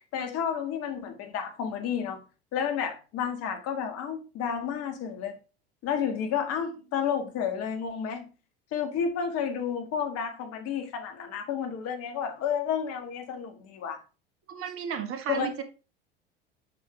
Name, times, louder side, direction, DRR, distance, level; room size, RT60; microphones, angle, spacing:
voice 1, 0.1-2.2 2.5-5.3 5.8-8.2 8.7-14.0 15.3-15.5, left 7 dB, 50° left, 1.8 m, -31 dB
voice 2, 14.5-15.6, right 7 dB, 45° right, 1.6 m, -33 dB
7.7 x 5.6 x 3.4 m
hypercardioid pair, 75°, 31 cm